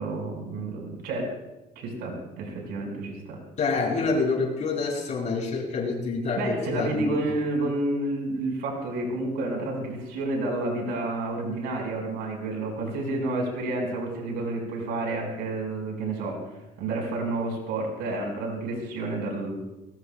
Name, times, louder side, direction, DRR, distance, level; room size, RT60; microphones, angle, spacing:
voice 1, 0.0-1.3 1.7-3.4 6.4-16.4 16.8-19.6, right 2 dB, 90° right, 1 dB, 4.8 m, -30 dB
voice 2, 3.6-7.2, left 4 dB, 45° left, -3 dB, 7.0 m, -27 dB
21.0 x 20.0 x 2.2 m, 0.96 s
cardioid pair, 110°, 17 cm